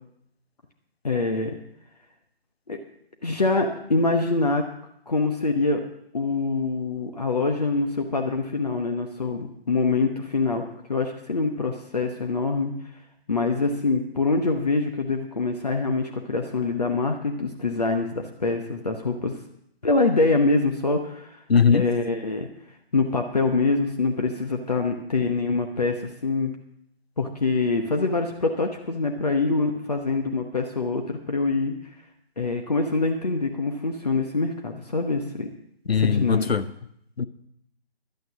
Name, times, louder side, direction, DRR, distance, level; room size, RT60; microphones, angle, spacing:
voice 1, 1.0-1.6 2.7-2.8 3.2-4.6 5.1-5.8 6.1-10.6 10.9-12.7 13.3-19.3 19.8-21.4 21.7-22.5 22.9-26.5 27.2-31.7 32.4-35.5 35.9-36.5, left 3 dB, 40° left, 3 dB, 1.0 m, -24 dB
voice 2, 21.5-21.8 35.9-36.7 37.2-37.3, left 6 dB, 70° left, 13 dB, 0.8 m, -20 dB
11.5 x 9.1 x 6.2 m, 0.73 s
figure-of-eight pair, 160°, 32 cm